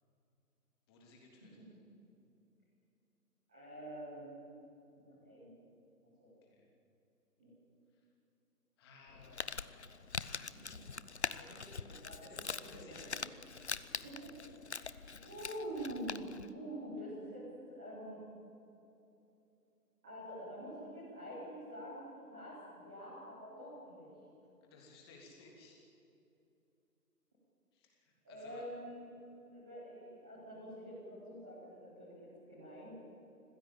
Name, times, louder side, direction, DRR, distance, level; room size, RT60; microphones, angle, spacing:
voice 1, 0.9-1.6 6.4-6.7 7.9-8.1 8.8-9.9 12.0-13.2 13.8-14.1 24.6-25.8 27.7-28.6, left 3 dB, 15° left, -1 dB, 3.0 m, -59 dB
voice 2, 3.5-4.5 4.9-5.5 6.2-6.3 7.4-7.5 10.5-10.8 11.3-12.5 12.7-13.2 14.0-14.3 14.7-18.2 20.0-24.1 28.2-29.0 29.5-32.9, equal, 5° right, -11 dB, 0.9 m, -47 dB
Crumpling crinkling, 9.1-16.5, left 5 dB, 45° left, 0.6 m, -43 dB
26.5 x 16.0 x 8.7 m, 2.8 s
figure-of-eight pair, 160°, 49 cm